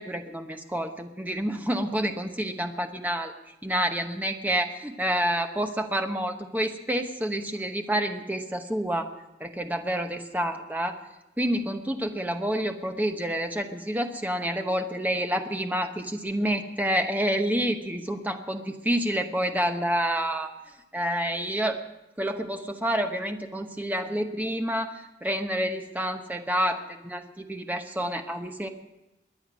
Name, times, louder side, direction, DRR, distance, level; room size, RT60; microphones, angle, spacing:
voice 1, 0.0-3.3 3.6-9.1 9.4-11.0 11.4-20.5 20.9-21.8 22.2-28.7, equal, 10° right, 5 dB, 0.9 m, -28 dB
21.5 x 9.3 x 6.1 m, 0.96 s
head